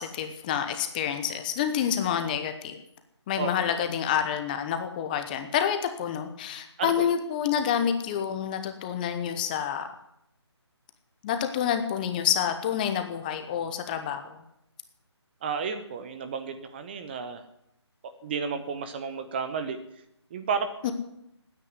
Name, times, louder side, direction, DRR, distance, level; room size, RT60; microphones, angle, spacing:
voice 1, 0.0-2.8 3.3-9.9 11.2-14.4 20.8-20.9, left 9 dB, 20° left, 8 dB, 1.0 m, -28 dB
voice 2, 3.4-3.8 6.8-7.1 15.4-17.4 18.0-19.8 20.3-20.9, right 5 dB, 20° right, 9 dB, 0.9 m, -32 dB
14.5 x 9.7 x 9.6 m, 0.78 s
figure-of-eight pair, 155°, 15 cm